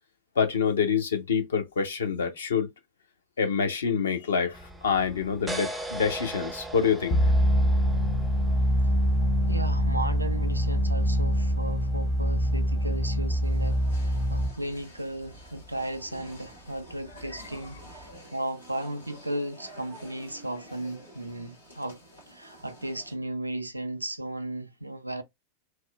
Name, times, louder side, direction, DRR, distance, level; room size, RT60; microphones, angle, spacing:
voice 1, 0.4-2.7 3.4-7.2, left 6 dB, 65° left, 0.6 m, -26 dB
sound 1, 4.5-18.2, right 1 dB, 5° right, 0.4 m, -43 dB
sound 2, 7.1-14.5, equal, 35° left, 0.7 m, -24 dB
voice 2, 9.5-22.0 22.3-25.2, right 1 dB, 85° right, 0.3 m, -35 dB
sound 3, 13.4-23.1, right 1 dB, 85° left, 1.5 m, -50 dB
2.9 x 2.0 x 2.2 m
figure-of-eight pair, 90°, 0 cm